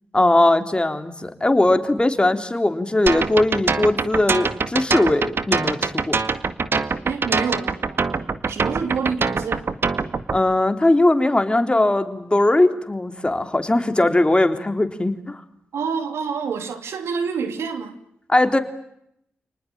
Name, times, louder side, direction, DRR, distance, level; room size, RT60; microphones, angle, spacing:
voice 1, 0.1-6.2 10.3-15.4 18.3-18.6, left 2 dB, 25° left, 3.6 m, -19 dB
sound 1, 3.1-10.4, right 4 dB, 60° right, 2.0 m, -23 dB
voice 2, 7.0-8.0 8.5-9.7 15.7-18.0, right 5 dB, 85° right, 3.1 m, -27 dB
29.5 x 20.0 x 8.8 m
supercardioid pair, 45°, 4 cm